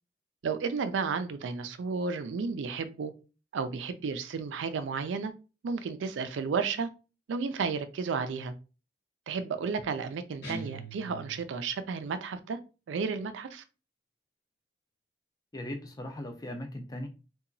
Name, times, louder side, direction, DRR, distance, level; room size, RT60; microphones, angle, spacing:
voice 1, 0.4-3.1 3.5-5.3 5.6-6.9 7.3-8.5 9.3-12.6 12.9-13.6, right 5 dB, 85° right, 0.4 m, -32 dB
sound 1, 10.4-11.8, right 2 dB, 65° left, 0.8 m, -42 dB
voice 2, 15.5-17.1, left 1 dB, 20° left, 0.4 m, -38 dB
2.8 x 2.3 x 2.5 m
head